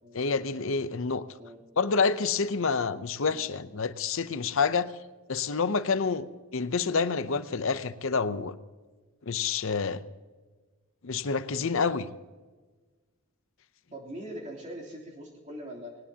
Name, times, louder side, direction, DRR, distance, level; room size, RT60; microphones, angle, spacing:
voice 1, 0.1-1.2 1.8-4.9 5.3-6.3 6.5-8.5 9.2-10.0 11.0-12.1, left 5 dB, 60° left, 13 dB, 0.7 m, -28 dB
voice 2, 13.9-16.0, equal, 35° right, -3 dB, 3.2 m, -42 dB
19.5 x 18.5 x 2.9 m, 1.3 s
head